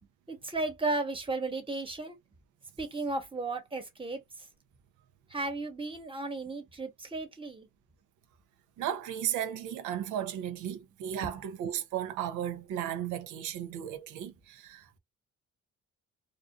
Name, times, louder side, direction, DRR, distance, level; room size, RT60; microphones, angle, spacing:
voice 1, 0.3-2.2 2.8-4.5 5.3-7.7 11.2-11.4, right 2 dB, 15° right, 1.0 m, -34 dB
voice 2, 8.8-15.0, right 10 dB, 85° right, 0.5 m, -35 dB
2.5 x 2.3 x 2.3 m
cardioid pair, 90°, 30 cm